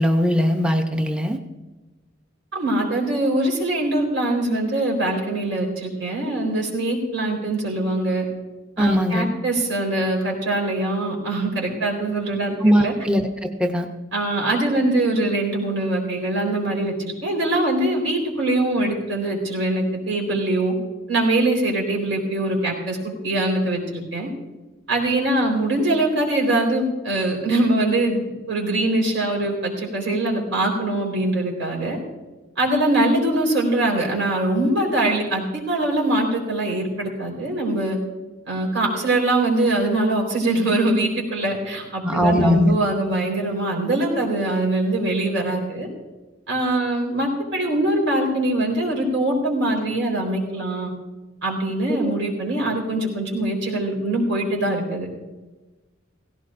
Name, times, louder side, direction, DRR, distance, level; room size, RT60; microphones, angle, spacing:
voice 1, 0.0-1.4 8.8-9.3 12.6-13.9 42.0-42.8, equal, 5° right, 4 dB, 0.6 m, -20 dB
voice 2, 2.5-8.2 8.8-12.9 14.1-16.9 17.2-20.7 21.1-24.3 24.9-32.0 32.6-38.0 38.5-45.9 46.5-50.9 51.4-55.1, right 1 dB, 85° right, -1 dB, 4.2 m, -23 dB
17.5 x 16.0 x 2.5 m, 1.2 s
head